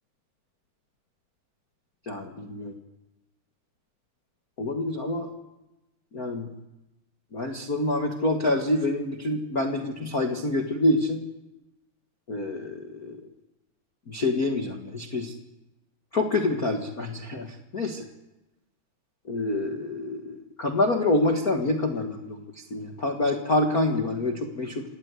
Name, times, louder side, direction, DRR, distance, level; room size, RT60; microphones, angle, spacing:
voice 1, 2.1-2.7 4.6-5.3 6.1-6.5 7.3-11.2 12.3-13.2 14.1-15.3 16.1-18.0 19.2-24.8, left 2 dB, 90° left, 3 dB, 0.8 m, -27 dB
26.5 x 18.5 x 8.3 m, 0.97 s
omnidirectional pair, 4.5 m